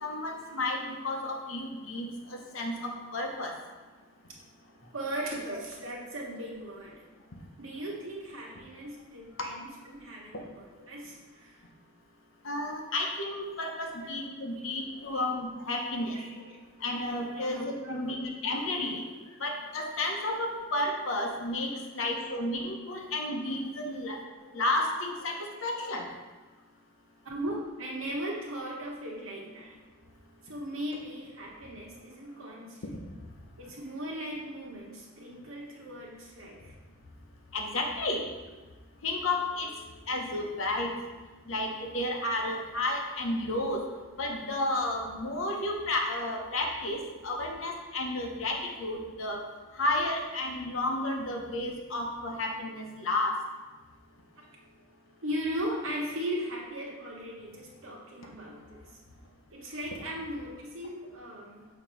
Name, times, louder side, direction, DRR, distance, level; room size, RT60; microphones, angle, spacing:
voice 1, 0.0-3.5 12.4-16.2 16.8-19.0 19.4-24.2 24.5-26.1 37.5-38.2 39.0-39.7 40.1-40.9 41.5-43.8 44.2-49.4 49.8-53.4, left 2 dB, 75° left, 1 dB, 0.9 m, -32 dB
voice 2, 4.9-7.0 7.6-11.6 13.7-14.1 14.5-14.6 15.1-15.3 15.6-15.8 16.1-16.5 17.3-18.2 22.0-22.1 23.9-24.0 27.2-29.8 30.4-32.8 33.6-36.7 55.2-58.8 59.5-61.7, right 1 dB, 80° right, -2 dB, 1.3 m, -38 dB
6.6 x 2.9 x 5.2 m, 1.3 s
head